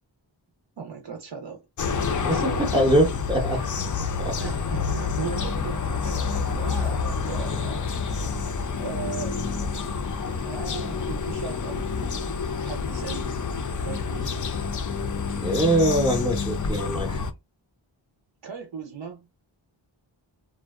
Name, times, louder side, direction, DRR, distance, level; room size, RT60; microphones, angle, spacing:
voice 1, 0.8-1.6 1.9-2.7 3.4-4.0 4.4-8.0 8.8-9.3 10.4-12.3 12.6-13.4 13.8-14.5 18.4-19.3, right 6 dB, 65° right, 0.6 m, -38 dB
sound 1, 1.8-17.3, left 5 dB, 45° left, 0.4 m, -28 dB
voice 2, 2.7-3.6 4.2-4.3 15.4-17.2, right 1 dB, 10° right, 0.6 m, -22 dB
sound 2, 3.8-14.7, left 3 dB, 80° left, 0.6 m, -41 dB
2.6 x 2.1 x 2.3 m
wide cardioid pair, 45°, 47 cm